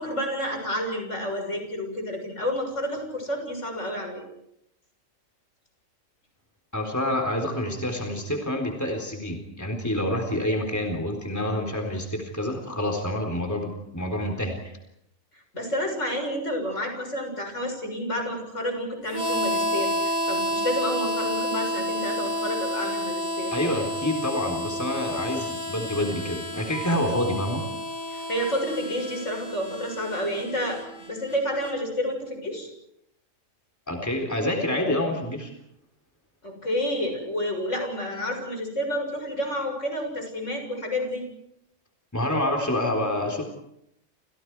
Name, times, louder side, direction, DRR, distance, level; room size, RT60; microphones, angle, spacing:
voice 1, 0.0-4.2 15.5-23.5 28.1-32.7 36.4-41.2, equal, 65° left, 3 dB, 7.2 m, -30 dB
voice 2, 6.7-14.8 23.5-27.6 33.9-35.5 42.1-43.4, left 1 dB, 10° left, 1 dB, 3.9 m, -27 dB
Harmonica, 19.1-31.7, equal, 30° left, 3.0 m, -30 dB
30.0 x 28.5 x 4.8 m, 0.79 s
omnidirectional pair, 1.4 m